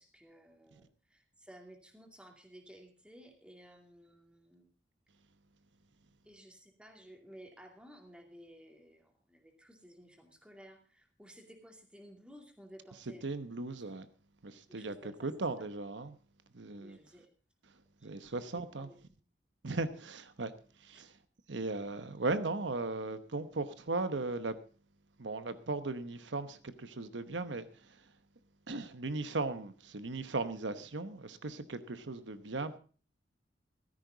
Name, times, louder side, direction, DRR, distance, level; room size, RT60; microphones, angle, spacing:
voice 1, 0.0-4.7 6.2-13.6 14.7-15.3 15.6-15.7 16.8-17.3 18.0-18.9 20.9-21.0, equal, 5° right, 2.5 m, -56 dB
voice 2, 13.2-14.1 14.4-16.2 16.5-17.0 18.0-18.9 19.6-20.5 20.8-21.2 21.5-24.6 25.2-28.0 28.7-32.8, right 3 dB, 90° right, 1.0 m, -37 dB
15.0 x 13.5 x 3.9 m
head